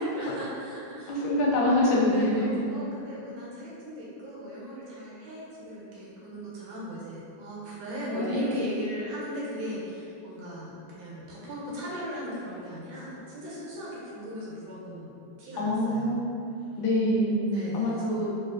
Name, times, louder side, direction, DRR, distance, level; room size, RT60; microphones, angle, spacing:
voice 1, 0.0-1.6 2.1-15.1 15.4-16.2 17.5-18.1, equal, 85° right, -6 dB, 1.6 m, -38 dB
voice 2, 1.1-2.5 8.1-8.4 15.6-16.3 16.8-18.4, left 1 dB, 90° left, -4 dB, 1.4 m, -25 dB
3.2 x 2.8 x 2.4 m, 2.6 s
omnidirectional pair, 2.1 m